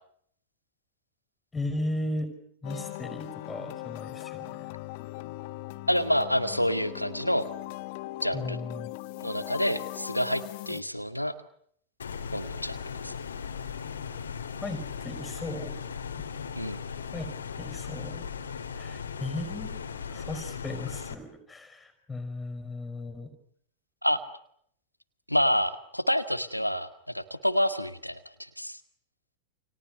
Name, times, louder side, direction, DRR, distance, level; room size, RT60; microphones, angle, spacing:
voice 1, 1.5-2.3 2.6-4.7 8.3-8.9 14.6-15.8 17.1-17.3 17.6-18.3 18.8-19.8 20.1-23.3, left 2 dB, 10° left, 10 dB, 5.7 m, -36 dB
sound 1, 2.6-10.8, left 18 dB, 50° left, 1.1 m, -39 dB
voice 2, 5.9-7.5 8.2-8.6 9.2-11.4 12.3-13.1 16.5-16.8 24.0-24.2 25.3-28.8, equal, 90° left, 9 dB, 2.0 m, -28 dB
sound 2, 12.0-21.1, left 6 dB, 70° left, 2.9 m, -38 dB
29.5 x 29.0 x 6.8 m, 0.67 s
figure-of-eight pair, 90°, 0 cm